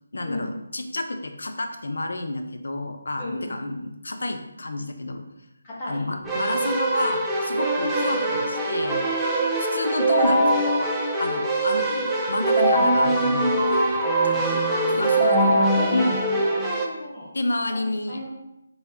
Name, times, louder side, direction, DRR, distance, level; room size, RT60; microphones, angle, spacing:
voice 1, 0.1-5.2 5.9-9.0 9.6-10.9 11.2-11.9 12.3-15.6 15.9-16.2 17.3-18.2, left 2 dB, 80° left, 6 dB, 0.5 m, -29 dB
voice 2, 3.2-3.7 5.6-6.4 8.1-8.4 9.8-10.5 11.8-12.1 14.7-17.3 17.7-18.3, left 1 dB, 20° left, -7 dB, 1.2 m, -34 dB
Keyboard (musical), 6.2-16.9, right 1 dB, 5° right, 0.4 m, -23 dB
3.9 x 3.9 x 2.9 m, 0.86 s
figure-of-eight pair, 170°, 0 cm